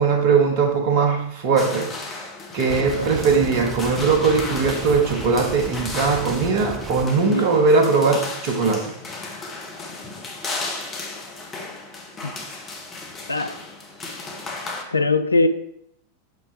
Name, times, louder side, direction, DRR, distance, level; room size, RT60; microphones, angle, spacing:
voice 1, 0.0-9.0, right 4 dB, 50° right, 1.3 m, -20 dB
sound 1, 1.6-14.8, left 3 dB, 25° left, 1.2 m, -35 dB
sound 2, 2.7-7.1, right 6 dB, 25° right, 0.4 m, -33 dB
voice 2, 2.9-3.3 7.3-7.5 12.2-12.3 13.3-13.6 14.9-15.5, left 2 dB, 80° left, 0.4 m, -21 dB
6.8 x 6.0 x 3.3 m
figure-of-eight pair, 90°, 0 cm